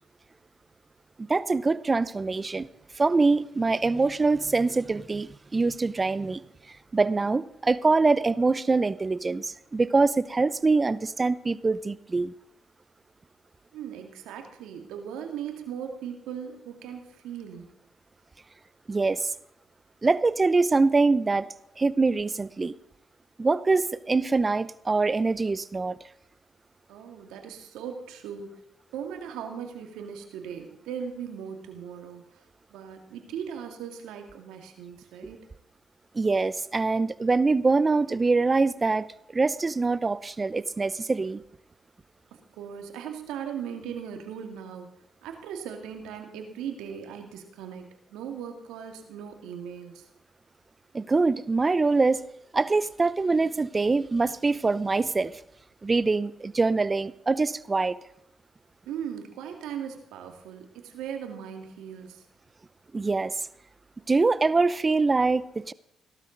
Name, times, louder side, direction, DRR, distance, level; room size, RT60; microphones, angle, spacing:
voice 1, 1.3-2.7 3.0-6.4 6.9-12.3 18.9-19.3 20.0-21.5 21.8-22.7 23.4-26.0 36.1-39.1 39.3-41.4 50.9-52.2 52.5-55.3 55.8-58.0 62.9-63.3 64.1-65.7, right 3 dB, 30° right, 18 dB, 0.7 m, -24 dB
voice 2, 13.7-17.8 26.9-28.6 28.9-32.4 32.7-35.4 42.6-44.9 45.2-50.1 58.8-62.2, right 8 dB, 80° right, 4 dB, 2.1 m, -38 dB
17.0 x 12.0 x 4.0 m, 0.80 s
hypercardioid pair, 50°, 0 cm